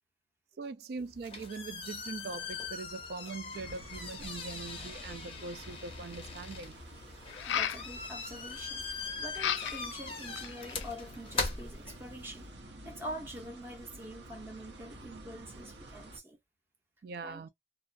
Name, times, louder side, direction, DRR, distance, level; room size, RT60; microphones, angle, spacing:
voice 1, 0.6-6.7 17.0-17.5, right 4 dB, 55° right, 0.3 m, -42 dB
sound 1, 1.0-12.4, left 4 dB, 30° left, 0.6 m, -41 dB
sound 2, 3.5-16.2, right 1 dB, 75° right, 0.8 m, -50 dB
sound 3, 5.6-5.7 7.3-7.8 9.3-9.9 10.4-10.9, left 9 dB, 80° left, 0.3 m, -33 dB
voice 2, 7.5-12.5 12.8-16.4 17.2-17.5, equal, 10° right, 0.7 m, -45 dB
2.5 x 2.2 x 2.5 m
head